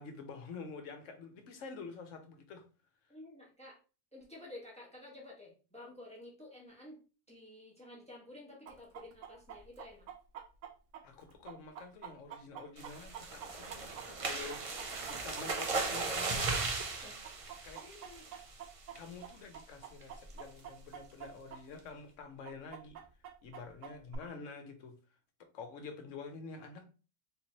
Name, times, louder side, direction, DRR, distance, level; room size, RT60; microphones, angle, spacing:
voice 1, 0.0-2.6 11.0-14.7 15.1-16.6 17.6-17.8 18.9-23.0 23.4-25.0 25.4-26.8, left 4 dB, 70° left, 6 dB, 1.1 m, -48 dB
voice 2, 3.1-3.8 4.1-7.0 7.3-10.1 17.0-17.3 17.8-18.3, left 2 dB, 5° left, -3 dB, 1.1 m, -52 dB
Chicken rooster, 8.7-17.0 17.2-21.6 21.9-22.0 22.4-24.2, right 9 dB, 70° right, 0.9 m, -48 dB
sound 1, 12.8-18.5 19.0-19.2 19.5-19.6 20.0-20.3, right 3 dB, 50° right, 0.4 m, -37 dB
3.7 x 2.9 x 2.9 m, 0.34 s
omnidirectional pair, 1.4 m